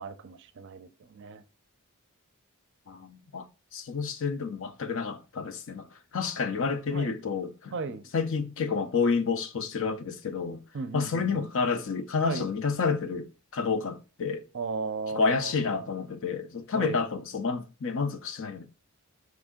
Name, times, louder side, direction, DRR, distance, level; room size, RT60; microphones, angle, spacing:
voice 1, 0.0-1.4 6.9-7.2 7.7-8.1 10.7-11.5 12.2-12.5 14.5-15.9 16.7-17.0, right 4 dB, 55° right, 0.5 m, -36 dB
voice 2, 2.9-3.5 3.7-5.9 6.1-10.6 10.9-14.5 15.1-18.7, left 5 dB, 60° left, 0.5 m, -30 dB
4.7 x 2.6 x 3.6 m
head